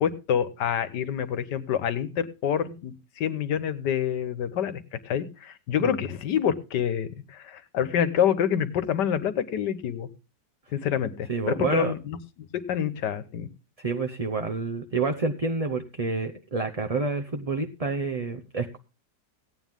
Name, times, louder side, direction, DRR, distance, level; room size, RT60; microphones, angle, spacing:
voice 1, 0.0-4.8 5.0-10.1 10.7-13.5, left 9 dB, 85° left, 13 dB, 1.6 m, -27 dB
voice 2, 11.3-11.9 13.8-18.8, right 3 dB, 30° right, 5 dB, 0.7 m, -28 dB
17.0 x 9.3 x 3.6 m, 0.30 s
omnidirectional pair, 1.8 m